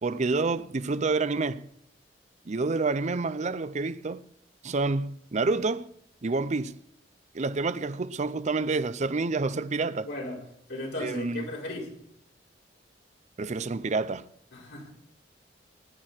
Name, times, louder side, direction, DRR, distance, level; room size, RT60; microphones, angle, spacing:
voice 1, 0.0-1.7 2.5-4.2 4.6-5.9 6.2-6.8 7.3-10.1 11.0-11.4 13.4-14.3, right 3 dB, 40° right, 0.5 m, -28 dB
voice 2, 10.0-12.0 14.5-14.9, left 1 dB, 85° left, 5.2 m, -36 dB
18.5 x 11.0 x 4.4 m
head